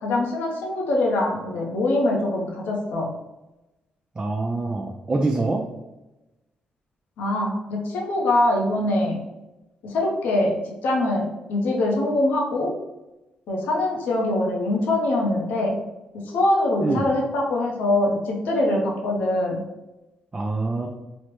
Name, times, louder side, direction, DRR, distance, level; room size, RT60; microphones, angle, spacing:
voice 1, 0.0-3.1 7.2-9.2 9.8-10.5 10.8-12.7 13.5-15.8 16.3-19.6, left 1 dB, 80° left, -1 dB, 0.7 m, -23 dB
voice 2, 4.2-5.7 16.8-17.1 20.3-20.9, right 3 dB, 25° right, 2 dB, 0.3 m, -25 dB
3.1 x 2.0 x 3.0 m, 0.99 s
cardioid pair, 75°, 3 cm